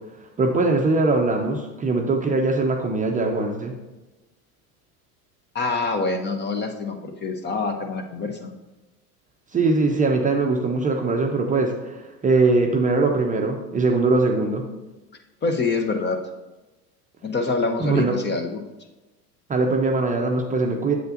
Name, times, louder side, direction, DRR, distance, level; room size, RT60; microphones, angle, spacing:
voice 1, 0.4-3.7 9.5-14.7 17.8-18.2 19.5-20.9, right 3 dB, 15° right, 2 dB, 0.7 m, -21 dB
voice 2, 5.5-8.5 15.4-16.2 17.2-18.6, left 3 dB, 20° left, 5 dB, 0.8 m, -26 dB
7.9 x 7.8 x 2.6 m, 1.1 s
figure-of-eight pair, 80°, 47 cm